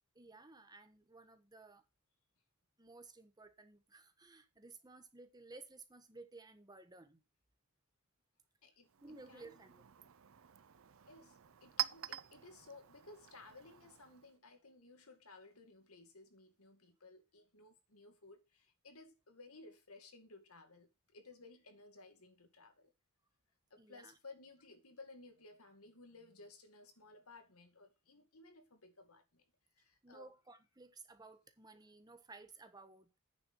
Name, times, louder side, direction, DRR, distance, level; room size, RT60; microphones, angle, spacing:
voice 1, 0.1-1.8 2.8-7.2 9.0-9.8 23.8-24.1 30.0-33.1, right 3 dB, 20° right, 1.2 m, -56 dB
voice 2, 8.6-9.6 11.1-22.9 23.7-29.4 29.8-30.3, left 3 dB, 70° left, 2.2 m, -58 dB
Chink clink, 8.9-14.4, right 12 dB, 65° right, 0.6 m, -46 dB
9.1 x 7.2 x 5.3 m
head